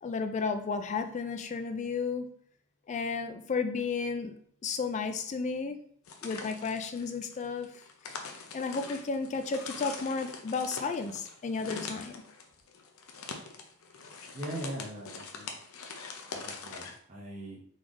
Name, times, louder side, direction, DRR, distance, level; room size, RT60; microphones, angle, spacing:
voice 1, 0.0-2.3 2.9-4.3 4.6-5.8 6.2-7.7 8.5-12.2, left 4 dB, 30° left, 7 dB, 0.3 m, -33 dB
sound 1, 6.1-17.0, left 4 dB, 70° left, 0.7 m, -43 dB
voice 2, 14.3-15.5 16.3-17.6, right 1 dB, 30° right, -5 dB, 0.7 m, -40 dB
4.0 x 3.3 x 3.6 m, 0.62 s
head